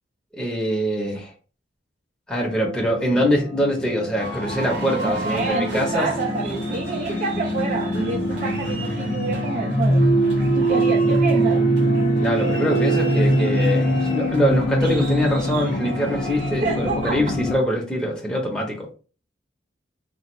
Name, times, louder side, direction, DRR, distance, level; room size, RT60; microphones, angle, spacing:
voice 1, 0.3-1.3 2.3-6.1 12.2-18.9, equal, 5° left, -2 dB, 0.7 m, -23 dB
sound 1, 2.4-17.6, right 1 dB, 40° left, 0.5 m, -23 dB
sound 2, 4.2-17.2, right 1 dB, 75° right, 1.3 m, -37 dB
voice 2, 5.0-10.1 10.5-11.8 16.4-17.2, right 4 dB, 40° right, 3 dB, 0.3 m, -28 dB
3.3 x 2.3 x 3.0 m, 0.37 s
head